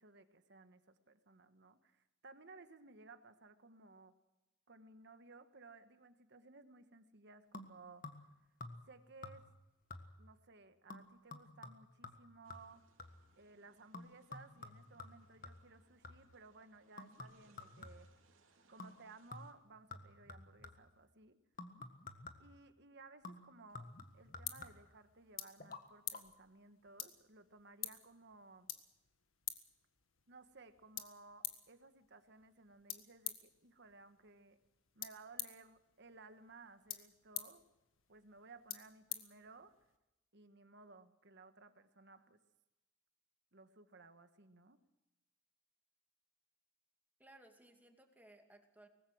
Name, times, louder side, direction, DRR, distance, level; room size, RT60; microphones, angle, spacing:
voice 1, 0.0-4.1 4.7-8.0 8.8-9.4 10.2-12.8 13.4-18.1 18.7-21.4 22.4-23.8 24.1-28.7 30.3-34.6 34.9-37.6 38.1-39.7 40.3-42.4 43.5-44.8, right 3 dB, 60° right, 9 dB, 1.5 m, -59 dB
sound 1, 7.5-8.3 8.6-9.0 9.2-9.6 9.9-10.3 10.9-13.3 13.9-16.4 17.0-18.2 18.8-19.0 19.3-21.0 21.6-22.6 23.2-25.0 25.6-25.8 26.1-26.2, left 3 dB, 45° left, 1.6 m, -52 dB
sound 2, 12.4-19.5, right 4 dB, 85° right, 2.8 m, -73 dB
sound 3, 23.7-40.0, left 12 dB, 85° left, 1.6 m, -50 dB
voice 2, 47.2-48.9, right 1 dB, 10° right, 3 dB, 2.4 m, -62 dB
23.5 x 19.5 x 6.4 m, 0.96 s
head